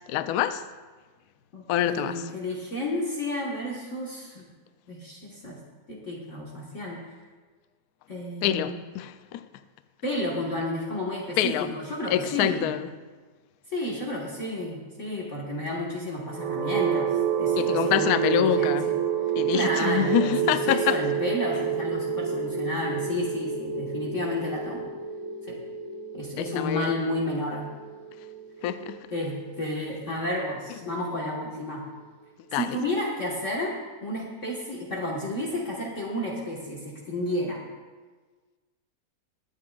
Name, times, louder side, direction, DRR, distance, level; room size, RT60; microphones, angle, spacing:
voice 1, 0.1-0.6 1.7-2.2 8.4-9.4 11.4-11.7 12.1-12.9 17.6-18.9 19.3-21.0 26.4-26.9 28.6-29.0 32.5-32.7, left 11 dB, 70° left, 0.9 m, -26 dB
voice 2, 1.5-4.5 4.9-5.6 5.9-7.0 8.1-8.8 10.0-12.7 13.7-19.0 19.3-24.9 25.4-25.6 26.1-27.7 29.1-31.8 32.5-37.6, left 1 dB, 45° left, 1.8 m, -31 dB
sound 1, 16.2-30.1, right 7 dB, 65° right, 1.5 m, -29 dB
23.0 x 8.6 x 2.4 m
omnidirectional pair, 1.9 m